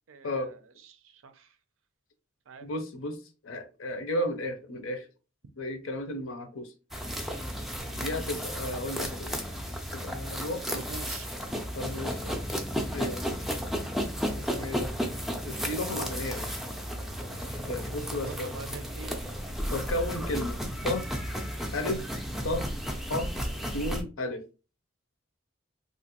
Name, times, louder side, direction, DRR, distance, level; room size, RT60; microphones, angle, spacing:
voice 1, 0.1-1.6 2.5-2.7 10.7-11.3 18.2-19.3, right 4 dB, 70° right, 9 dB, 0.5 m, -45 dB
voice 2, 2.6-5.1 5.6-6.7 7.9-9.5 9.9-10.8 11.7-12.4 12.9-13.4 14.4-14.9 15.4-16.6 17.7-18.6 19.7-21.1 21.7-22.0 22.4-22.7 23.1-23.3 23.7-24.4, left 1 dB, 75° left, 7 dB, 0.6 m, -34 dB
sound 1, 6.9-24.0, equal, ahead, 0.4 m, -33 dB
2.9 x 2.5 x 2.8 m, 0.33 s
head